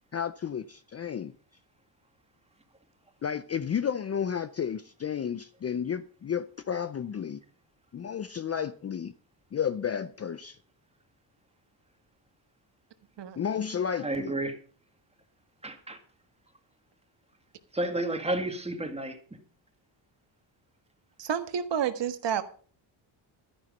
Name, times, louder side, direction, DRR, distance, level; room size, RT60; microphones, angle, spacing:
voice 1, 0.1-1.3 3.2-7.4 7.9-9.1 9.5-10.6 13.4-14.3, left 8 dB, 35° left, 0.5 m, -32 dB
voice 2, 14.0-14.6 15.6-16.0 17.7-19.2, right 1 dB, 15° right, 2.0 m, -31 dB
voice 3, 21.2-22.4, right 8 dB, 60° right, 1.6 m, -29 dB
12.5 x 10.0 x 5.3 m
cardioid pair, 125°, 47 cm